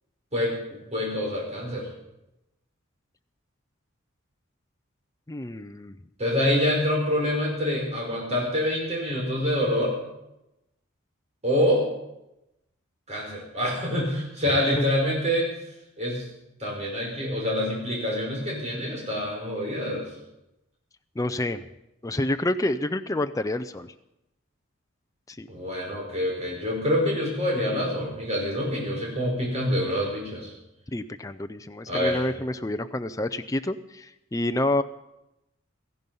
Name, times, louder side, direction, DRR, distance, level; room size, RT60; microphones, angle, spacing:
voice 1, 0.3-1.9 6.2-10.0 11.4-11.8 13.1-15.5 16.0-16.3 16.6-20.1 25.5-30.5 31.9-32.2, left 1 dB, 35° right, -2 dB, 5.2 m, -26 dB
voice 2, 5.3-6.0 14.8-14.9 21.2-21.7 22.0-23.9 25.3-25.5 30.9-34.8, left 1 dB, 15° left, 9 dB, 0.5 m, -28 dB
16.5 x 15.0 x 5.4 m, 0.89 s
head